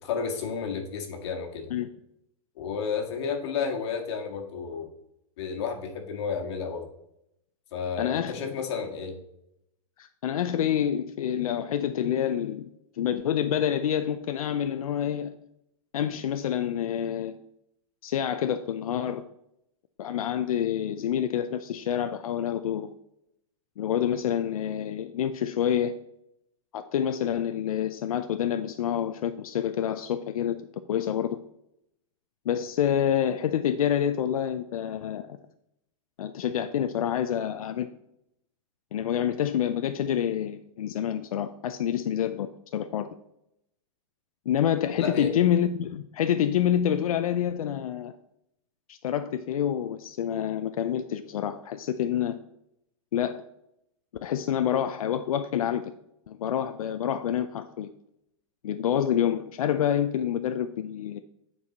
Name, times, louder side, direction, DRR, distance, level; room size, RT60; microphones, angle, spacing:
voice 1, 0.0-1.7 2.6-4.9 5.4-6.9 7.7-9.1 45.0-45.3, left 6 dB, 50° left, 2 dB, 1.9 m, -31 dB
voice 2, 8.0-8.5 10.0-15.3 15.9-17.4 18.0-19.2 20.0-22.9 23.8-25.9 26.7-30.6 30.9-31.4 32.5-35.4 36.2-37.9 38.9-43.1 44.5-48.1 48.9-52.4 53.1-53.4 54.2-55.9 56.3-57.9 58.6-61.2, left 9 dB, 90° left, 9 dB, 0.5 m, -27 dB
9.6 x 4.8 x 4.1 m, 0.80 s
supercardioid pair, 160°, 18 cm